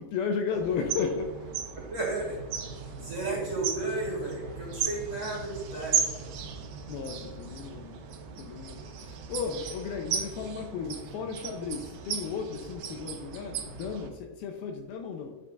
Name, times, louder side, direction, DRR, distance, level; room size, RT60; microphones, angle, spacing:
voice 1, 0.0-1.5 6.9-8.0 8.4-15.4, left 6 dB, 80° left, 3 dB, 2.3 m, -34 dB
sound 1, 0.5-14.1, right 7 dB, 80° right, 3.0 m, -36 dB
voice 2, 1.9-2.4 2.7-6.3, right 2 dB, 45° right, -3 dB, 2.4 m, -33 dB
sound 2, 2.3-6.6, right 3 dB, 45° left, 2.4 m, -46 dB
9.1 x 6.5 x 2.3 m, 1.3 s
omnidirectional pair, 4.7 m